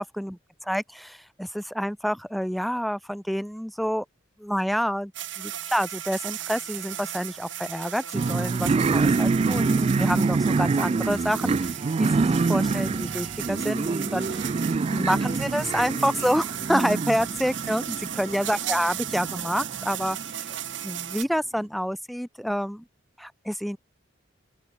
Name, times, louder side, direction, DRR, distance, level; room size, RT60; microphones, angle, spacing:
voice 1, 0.0-4.0 4.4-5.1 5.4-11.7 12.0-14.3 14.9-20.5 20.8-22.8 23.2-23.8, equal, ahead, 1.1 m, -28 dB
sound 1, 5.1-21.3, right 11 dB, 75° right, 2.1 m, -36 dB
sound 2, 8.1-20.5, right 4 dB, 30° right, 0.3 m, -26 dB
open air
head